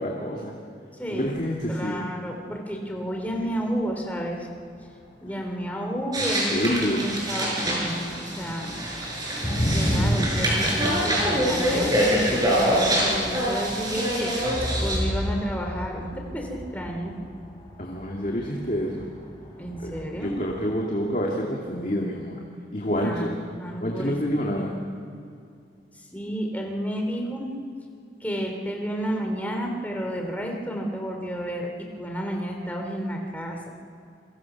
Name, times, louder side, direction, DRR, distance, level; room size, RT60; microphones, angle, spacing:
voice 1, 0.0-0.8 1.2-2.1 6.5-7.1 17.8-19.1 19.8-22.4 22.7-23.4 23.8-24.7, equal, 40° left, -1 dB, 2.3 m, -28 dB
voice 2, 0.9-1.4 1.7-4.5 5.2-8.8 9.0-9.1 9.7-14.3 14.8-17.3 19.6-20.4 23.0-24.8 25.9-27.5 28.2-31.7 32.0-33.7, equal, 10° left, 1 dB, 3.2 m, -31 dB
sound 1, 3.3-3.4 7.9-8.0 8.3-20.6, equal, 25° left, 3.9 m, -32 dB
sound 2, 6.1-15.0, equal, 20° right, 6.1 m, -25 dB
29.5 x 23.0 x 6.0 m, 2.5 s
head